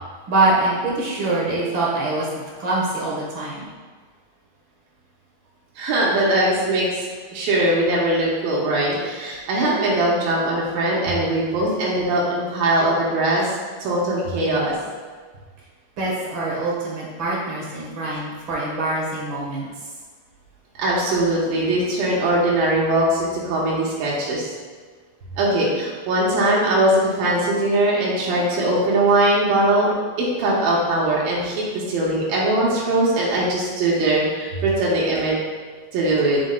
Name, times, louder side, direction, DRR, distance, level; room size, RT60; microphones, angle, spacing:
voice 1, 0.3-2.3 2.6-3.7 16.0-19.7, right 2 dB, 50° right, -4 dB, 1.5 m, -24 dB
voice 2, 5.8-14.8 20.8-24.5 25.4-29.9 30.2-35.4 35.9-36.4, right 1 dB, 85° right, -5 dB, 2.9 m, -21 dB
7.2 x 7.1 x 2.3 m, 1.5 s
omnidirectional pair, 4.1 m